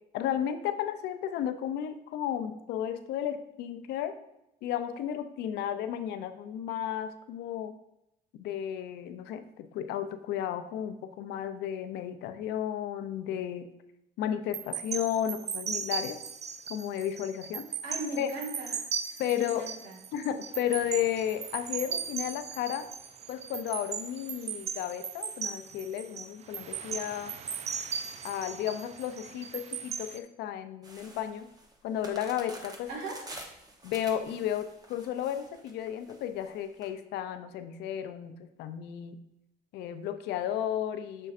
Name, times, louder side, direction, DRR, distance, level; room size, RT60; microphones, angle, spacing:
voice 1, 0.1-4.1 4.6-7.8 8.3-13.7 14.2-16.2 16.7-17.7 18.2-18.3 19.2-19.7 20.1-22.9 23.3-27.4 28.2-31.5 31.8-32.9 33.8-39.2 39.7-41.3, left 10 dB, 80° left, 10 dB, 0.6 m, -33 dB
sound 1, 14.5-30.2, right 7 dB, 40° right, 0.4 m, -37 dB
voice 2, 17.8-20.0 32.9-33.2, right 2 dB, 70° right, 0 dB, 1.9 m, -39 dB
sound 2, 30.8-36.9, right 1 dB, 20° right, 1.0 m, -48 dB
6.5 x 6.2 x 2.5 m, 0.85 s
cardioid pair, 110°, 17 cm